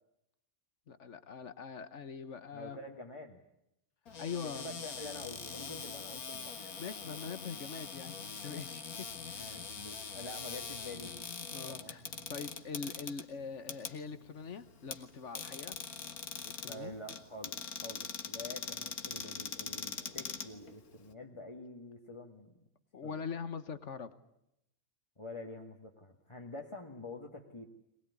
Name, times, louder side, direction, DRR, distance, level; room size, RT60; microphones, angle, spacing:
voice 1, 0.9-2.8 4.2-4.8 6.6-9.1 9.3-9.6 11.5-12.0 12.3-15.8 16.4-16.9 22.9-24.1, left 5 dB, 55° left, 13 dB, 1.5 m, -43 dB
voice 2, 2.5-3.4 4.5-6.6 9.4-11.3 11.7-12.0 16.7-22.6 23.0-23.2 25.2-27.7, left 2 dB, 20° left, 1 dB, 1.9 m, -47 dB
Cupboard open or close, 4.1-21.1, left 6 dB, 90° left, 2.0 m, -43 dB
23.0 x 20.0 x 9.8 m, 0.82 s
omnidirectional pair, 1.5 m